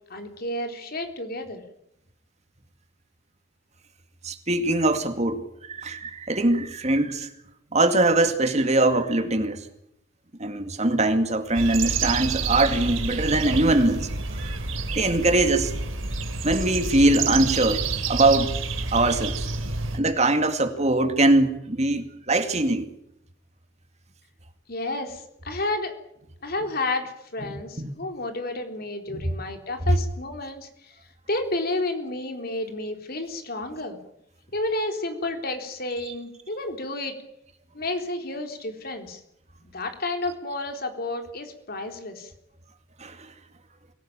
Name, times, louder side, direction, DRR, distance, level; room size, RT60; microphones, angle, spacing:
voice 1, 0.1-1.6 24.7-25.9 26.4-30.9 31.3-34.0 34.5-37.1 37.7-39.2 39.7-42.3, left 2 dB, 50° left, 5 dB, 3.7 m, -31 dB
voice 2, 4.2-7.3 7.7-9.6 10.4-14.1 14.4-14.5 15.0-15.7 16.4-17.8 18.1-18.5 18.9-19.5 19.9-22.8 27.5-27.9 29.1-29.2 43.0-43.3, right 2 dB, 35° right, 7 dB, 2.2 m, -22 dB
sound 1, 11.5-20.0, right 4 dB, 85° right, 2.9 m, -29 dB
24.0 x 17.5 x 8.8 m, 0.78 s
head